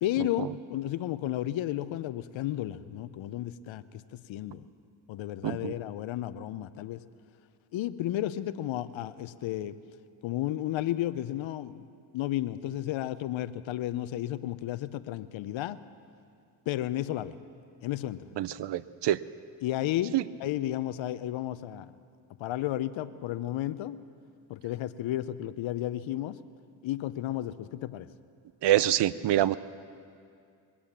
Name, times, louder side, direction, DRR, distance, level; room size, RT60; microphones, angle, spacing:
voice 1, 0.0-4.7 5.1-7.0 7.7-9.8 10.2-11.8 12.1-15.8 16.7-17.3 17.8-18.3 19.6-21.9 22.4-24.0 24.5-26.4 26.8-28.1, left 13 dB, 65° left, 14 dB, 0.7 m, -33 dB
voice 2, 18.4-19.2 20.1-20.2 28.6-29.6, right 13 dB, 55° right, 18 dB, 0.6 m, -25 dB
22.5 x 8.6 x 7.3 m, 2.4 s
supercardioid pair, 60°, 49 cm